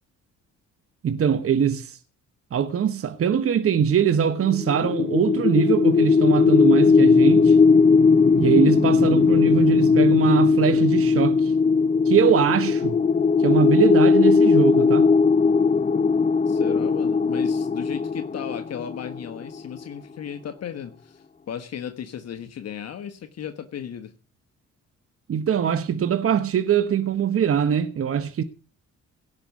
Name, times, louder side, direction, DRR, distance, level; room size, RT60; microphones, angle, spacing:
voice 1, 1.0-2.0 2.5-7.6 8.4-11.5 12.0-13.0 13.4-15.1 25.3-28.4, right 8 dB, 50° right, 1.1 m, -22 dB
sound 1, 4.4-19.5, left 5 dB, 25° left, 0.7 m, -18 dB
voice 2, 16.5-24.1, left 9 dB, 55° left, 1.2 m, -35 dB
17.0 x 6.0 x 8.3 m
cardioid pair, 90°, 30 cm